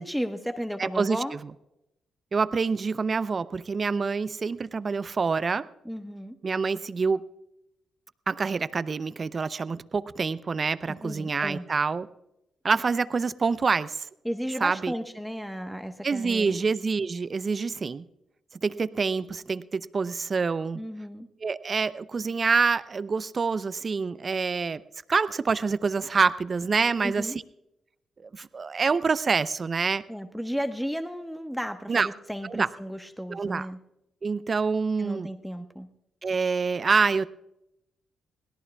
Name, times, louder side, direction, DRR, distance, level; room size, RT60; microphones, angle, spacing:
voice 1, 0.0-1.3 5.8-6.4 10.9-11.7 14.2-16.6 20.7-21.3 27.0-27.4 30.1-33.8 35.0-35.9, equal, ahead, 7 dB, 1.1 m, -34 dB
voice 2, 0.8-1.2 2.3-5.6 6.4-7.2 8.3-12.1 12.6-14.1 14.6-14.9 16.0-18.0 18.6-20.8 21.4-24.8 25.1-27.4 28.3-30.0 31.9-32.1 32.4-32.7 33.3-33.7 34.2-35.3 36.2-37.3, right 4 dB, 45° right, 15 dB, 0.6 m, -26 dB
22.5 x 17.5 x 2.3 m, 0.85 s
hypercardioid pair, 45°, 0 cm